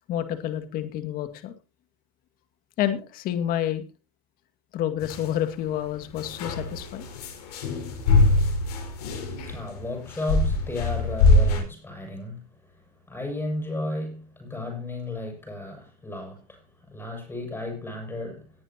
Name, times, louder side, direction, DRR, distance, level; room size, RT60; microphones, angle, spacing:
voice 1, 0.1-1.5 2.8-3.8 4.7-7.1, left 11 dB, 50° left, 2.2 m, -29 dB
sound 1, 5.0-5.3 6.2-11.6, left 2 dB, 85° left, 5.0 m, -23 dB
voice 2, 8.9-18.5, left 2 dB, 10° left, 6.6 m, -34 dB
19.5 x 10.0 x 2.9 m
supercardioid pair, 115°, 19 cm